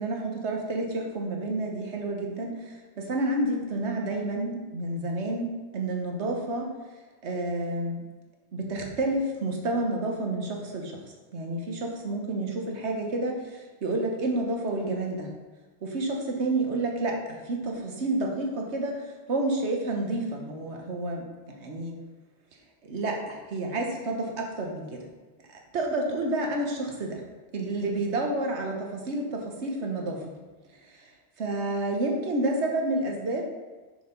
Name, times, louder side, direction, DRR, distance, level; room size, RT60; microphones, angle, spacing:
voice 1, 0.0-6.7 7.2-8.0 8.5-10.9 11.3-15.3 15.8-21.9 22.8-25.0 25.5-27.2 27.5-30.2 30.9-31.0 31.4-33.5, right 2 dB, 85° right, 1 dB, 1.4 m, -30 dB
6.3 x 5.0 x 5.2 m, 1.3 s
omnidirectional pair, 1.1 m